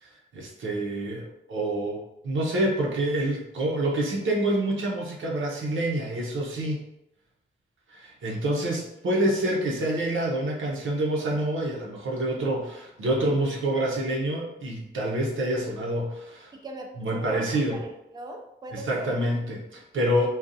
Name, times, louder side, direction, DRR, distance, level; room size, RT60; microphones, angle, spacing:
voice 1, 0.0-2.0 2.2-6.8 7.9-16.5 17.0-17.8 18.7-20.3, right 1 dB, 85° right, -2 dB, 0.8 m, -27 dB
voice 2, 16.5-19.1, right 2 dB, 20° right, 2 dB, 0.4 m, -40 dB
4.0 x 2.3 x 2.6 m, 0.85 s
wide cardioid pair, 110°, 20 cm